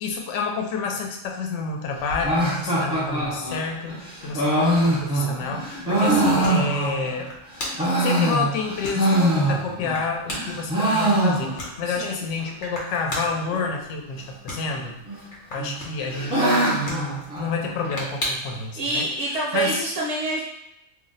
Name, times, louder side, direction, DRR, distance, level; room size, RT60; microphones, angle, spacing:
voice 1, 0.0-7.3 8.0-14.9 15.5-19.0 19.3-19.9, left 4 dB, 70° left, 2 dB, 0.9 m, -29 dB
sound 1, 1.9-18.7, left 1 dB, 45° left, 0.9 m, -39 dB
sound 2, 2.2-7.2 7.6-10.0 10.3-11.8 12.1-12.2 12.4-12.5 13.1-13.6 14.6-15.2 15.6-18.0, right 1 dB, 5° right, 0.5 m, -23 dB
voice 2, 11.9-12.3 18.8-20.4, right 2 dB, 70° right, -4 dB, 0.9 m, -26 dB
2.5 x 2.0 x 3.9 m, 0.89 s
omnidirectional pair, 1.3 m